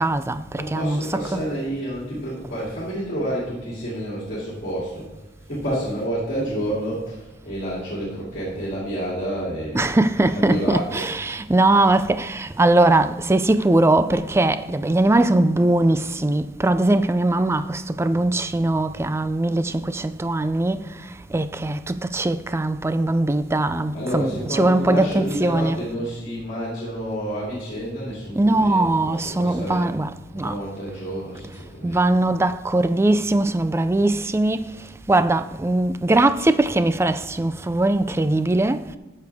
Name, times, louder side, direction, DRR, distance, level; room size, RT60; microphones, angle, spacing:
voice 1, 0.0-1.0 1.3-1.4 9.7-20.9 21.3-25.8 28.3-30.6 31.8-34.7 35.1-38.9, right 2 dB, 15° right, 0.3 m, -20 dB
voice 2, 0.5-5.1 5.4-11.1 23.9-29.9 30.3-32.1, equal, 45° left, 2.9 m, -29 dB
14.0 x 6.7 x 3.5 m
head